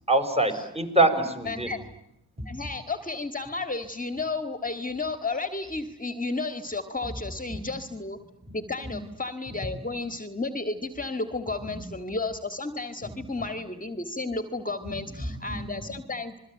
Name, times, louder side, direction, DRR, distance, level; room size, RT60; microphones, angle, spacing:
voice 1, 0.1-1.7 2.5-2.6 8.5-8.6 8.8-8.9 11.7-11.8 14.8-15.9, right 2 dB, 15° right, 5 dB, 6.1 m, -26 dB
voice 2, 1.5-1.8 2.5-8.2 8.5-16.4, left 3 dB, 20° left, 9 dB, 2.0 m, -32 dB
27.5 x 22.5 x 9.0 m, 0.82 s
cardioid pair, 105°, 38 cm